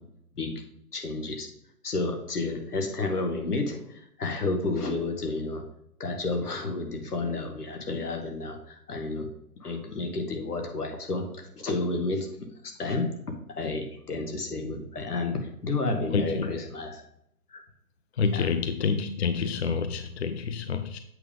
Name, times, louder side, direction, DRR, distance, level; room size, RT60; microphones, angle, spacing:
voice 1, 0.9-1.5 1.8-5.6 6.0-9.3 9.6-12.3 12.6-13.1 13.5-17.0 17.5-17.6 18.2-18.5, left 3 dB, 75° left, 4 dB, 1.8 m, -31 dB
voice 2, 16.1-16.5 18.2-21.0, left 5 dB, 45° left, 9 dB, 0.5 m, -28 dB
8.1 x 5.4 x 3.7 m, 0.74 s
figure-of-eight pair, 140°, 47 cm